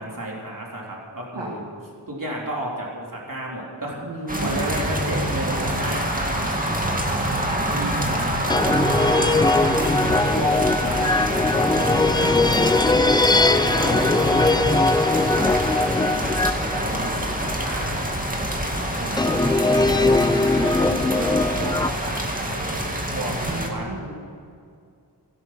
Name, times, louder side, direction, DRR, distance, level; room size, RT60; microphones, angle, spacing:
voice 1, 0.0-1.6 2.1-6.6 7.0-9.8 10.3-10.5 10.8-13.0 13.6-14.8 15.1-16.4 16.7-17.9 18.5-20.2 20.6-22.9 23.1-23.3 23.7-23.9, right 1 dB, 50° right, -3 dB, 3.8 m, -33 dB
voice 2, 4.0-4.6 13.3-13.5 23.4-24.2, right 2 dB, 85° right, -3 dB, 2.2 m, -33 dB
sound 1, 4.3-23.7, right 1 dB, 20° right, 2.3 m, -26 dB
sound 2, 6.7-7.2 8.5-18.1 19.2-21.9, left 2 dB, 10° left, 0.3 m, -21 dB
17.0 x 12.5 x 6.1 m, 2.3 s
wide cardioid pair, 50°, 43 cm